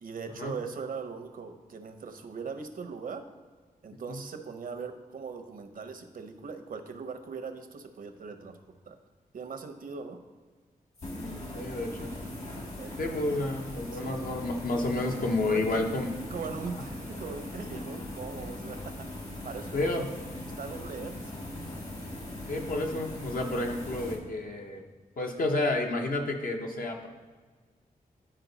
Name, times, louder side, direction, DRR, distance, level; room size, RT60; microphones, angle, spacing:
voice 1, 0.0-3.2 3.8-8.6 8.9-9.0 9.3-10.2 12.8-13.2 13.9-14.2 14.9-15.9 16.3-18.8 19.2-20.1 20.6-21.3, right 5 dB, 65° right, 7 dB, 0.7 m, -40 dB
sound 1, 11.0-24.2, left 1 dB, 50° left, 1.5 m, -40 dB
voice 2, 11.1-12.1 13.0-16.1 19.7-20.1 22.5-24.8 25.2-27.1, left 2 dB, 65° left, 2 dB, 1.0 m, -30 dB
10.0 x 4.4 x 4.0 m, 1.5 s
wide cardioid pair, 90°, 15 cm